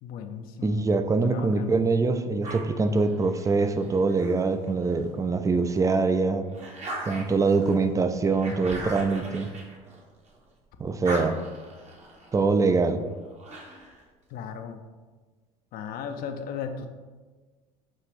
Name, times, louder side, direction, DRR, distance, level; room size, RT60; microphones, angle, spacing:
voice 1, 0.0-0.9 1.2-1.8 14.3-14.8 15.7-16.9, left 7 dB, 55° left, 7 dB, 0.5 m, -36 dB
voice 2, 0.6-6.5 7.0-9.5 10.8-11.4 12.3-13.0, right 4 dB, 20° right, 9 dB, 0.4 m, -24 dB
sound 1, 2.4-5.1 5.6-10.4 10.7-14.0, right 1 dB, 40° right, 0.9 m, -41 dB
6.2 x 2.4 x 3.1 m, 1.4 s
hypercardioid pair, 70°, 18 cm